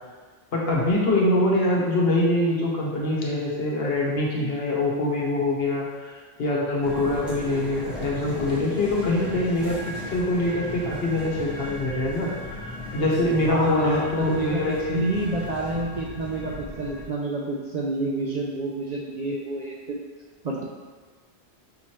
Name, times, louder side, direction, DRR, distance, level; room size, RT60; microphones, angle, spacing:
voice 1, 0.5-15.0, left 1 dB, 70° left, -3 dB, 1.1 m, -24 dB
sound 1, 6.8-17.0, left 1 dB, ahead, 1.0 m, -37 dB
voice 2, 13.5-20.0 20.4-20.6, right 2 dB, 55° right, -3 dB, 0.5 m, -28 dB
5.7 x 3.0 x 2.9 m, 1.4 s
omnidirectional pair, 1.1 m